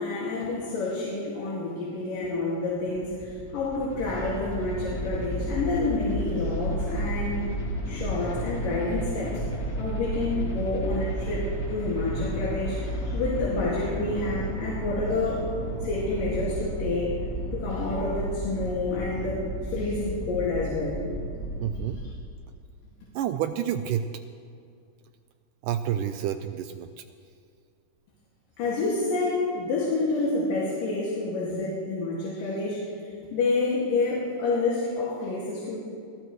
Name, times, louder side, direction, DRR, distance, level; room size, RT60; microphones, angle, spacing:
voice 1, 0.0-7.5 7.8-9.4 9.8-15.5 15.8-17.1 17.5-21.0 28.6-32.9 33.3-35.8, left 3 dB, 70° left, -5 dB, 3.9 m, -28 dB
sound 1, 2.7-22.1, right 1 dB, 25° left, 3.0 m, -32 dB
voice 2, 21.6-22.0 23.2-24.1 25.6-26.9, right 10 dB, 80° right, 9 dB, 2.0 m, -29 dB
23.5 x 17.0 x 3.2 m, 2.3 s
omnidirectional pair, 4.1 m